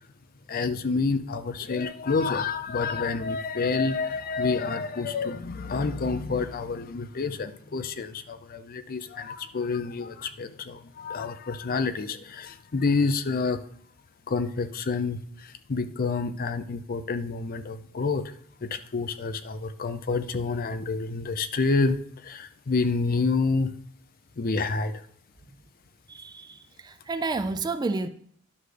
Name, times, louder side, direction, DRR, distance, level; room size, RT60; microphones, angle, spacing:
voice 1, 0.5-13.6 14.3-18.3 18.6-23.7 24.4-24.9, left 4 dB, 45° left, 0.5 m, -28 dB
voice 2, 26.1-28.1, right 3 dB, 20° right, 0.3 m, -30 dB
11.0 x 6.4 x 3.3 m
head